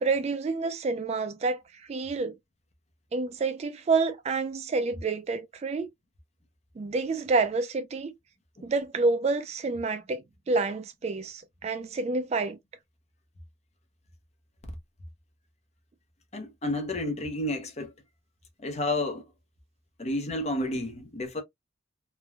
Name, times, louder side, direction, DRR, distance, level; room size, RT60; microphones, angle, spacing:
voice 1, 0.0-2.4 3.1-5.9 6.8-8.1 8.6-12.6, right 3 dB, 35° right, 0.3 m, -28 dB
voice 2, 16.3-17.9 18.6-19.2 20.0-21.4, left 1 dB, 35° left, 0.6 m, -31 dB
3.2 x 2.1 x 2.3 m
head